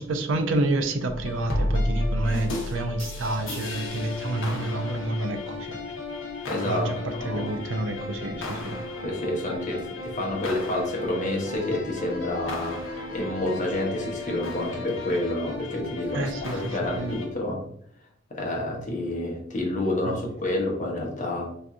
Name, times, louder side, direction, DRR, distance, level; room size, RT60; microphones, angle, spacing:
voice 1, 0.0-5.8 6.6-8.8 16.1-17.1 20.1-20.2, right 2 dB, 75° right, 6 dB, 0.5 m, -29 dB
sound 1, 1.1-17.3, left 2 dB, 75° left, 0.7 m, -33 dB
voice 2, 6.5-6.9 7.2-7.5 9.0-17.6 18.3-21.5, left 1 dB, 40° left, 0 dB, 0.9 m, -29 dB
4.0 x 2.6 x 2.3 m, 0.68 s
head